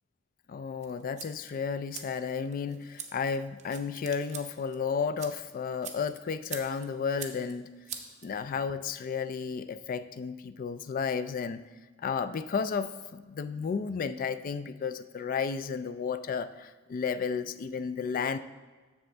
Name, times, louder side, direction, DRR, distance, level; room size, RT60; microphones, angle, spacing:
voice 1, 0.5-7.7 8.2-11.7 12.0-18.4, left 6 dB, 45° left, 13 dB, 0.3 m, -33 dB
sound 1, 0.8-8.8, right 7 dB, 35° right, 0.7 m, -46 dB
7.8 x 6.8 x 3.3 m, 1.4 s
head